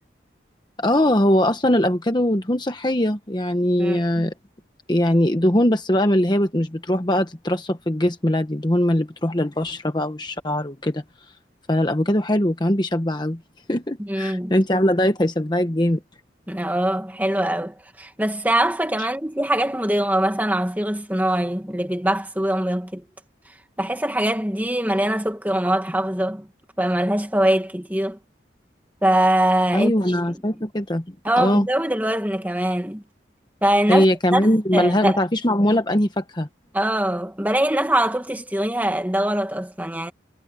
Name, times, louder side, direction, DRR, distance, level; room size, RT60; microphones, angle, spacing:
voice 1, 0.8-4.3 4.9-11.0 11.7-13.4 13.7-16.0 29.7-31.0 31.4-31.7 33.9-36.5, left 1 dB, 25° left, 1.1 m, -21 dB
voice 2, 3.8-4.3 14.0-14.5 16.5-23.0 23.8-26.5 26.8-28.2 29.0-29.9 30.3-30.4 31.2-33.0 33.6-34.1 34.3-35.2 36.7-40.1, right 1 dB, 10° right, 2.2 m, -22 dB
head